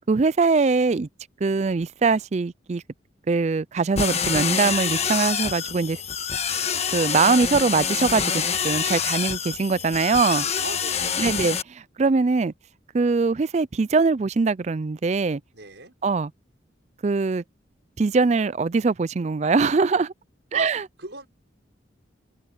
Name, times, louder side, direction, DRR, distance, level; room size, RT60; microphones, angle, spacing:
voice 1, 0.1-1.1 1.4-2.8 3.3-6.0 6.9-10.5 11.2-11.6 12.0-12.5 12.9-15.4 16.0-16.3 17.0-17.4 18.0-20.1 20.5-20.8, right 4 dB, 35° right, 0.4 m, -22 dB
sound 1, 4.0-11.6, left 7 dB, 35° left, 1.4 m, -26 dB
voice 2, 10.6-11.5 15.5-15.9 20.5-20.7 21.0-21.3, right 3 dB, 65° right, 6.1 m, -38 dB
head